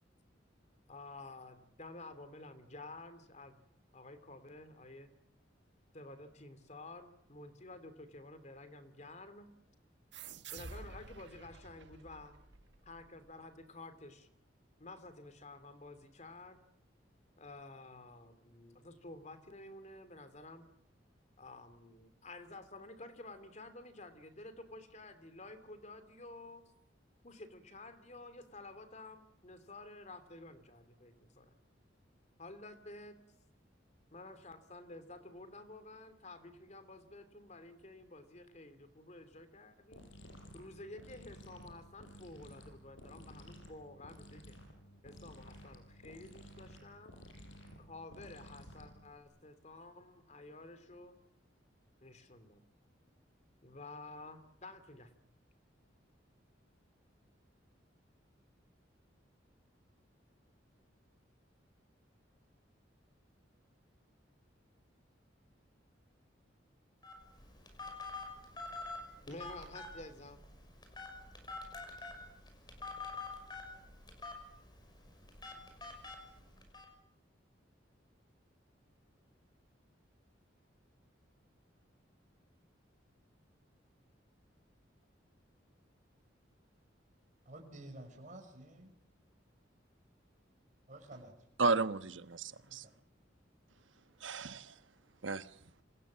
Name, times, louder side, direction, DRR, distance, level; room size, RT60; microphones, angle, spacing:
voice 1, 0.9-3.6 3.9-5.1 5.9-9.5 10.5-12.4 12.8-14.3 14.8-16.6 17.4-20.7 21.4-26.6 27.2-31.5 32.4-33.2 34.1-40.1 40.5-44.6 45.0-47.1 47.8-51.2 52.0-52.6 53.6-55.1 69.3-70.4, left 2 dB, 40° left, 2.9 m, -51 dB
sound 1, 10.1-13.3, right 4 dB, 65° right, 1.6 m, -50 dB
sound 2, 39.9-49.2, equal, 85° left, 6.6 m, -54 dB
Telephone, 67.0-76.8, left 3 dB, 25° left, 6.0 m, -47 dB
voice 2, 87.4-88.9 90.9-91.4 92.7-92.9, right 1 dB, 40° right, 6.4 m, -51 dB
voice 3, 91.6-92.8 94.2-94.7 95.2-95.5, right 3 dB, 85° right, 1.2 m, -33 dB
28.0 x 26.5 x 7.5 m
head